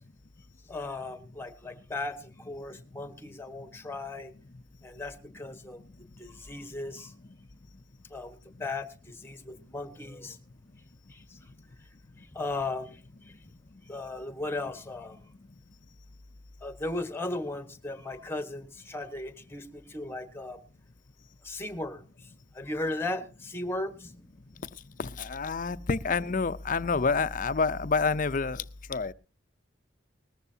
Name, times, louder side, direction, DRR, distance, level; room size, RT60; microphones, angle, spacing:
voice 1, 0.7-4.3 4.8-5.8 6.2-7.1 8.1-10.4 11.1-11.4 12.2-13.0 13.9-15.2 16.6-20.6 21.4-22.1 22.5-24.2, left 2 dB, 15° left, 1.3 m, -36 dB
voice 2, 25.3-28.6 28.9-29.1, left 4 dB, 45° left, 0.6 m, -27 dB
19.5 x 14.0 x 2.8 m
head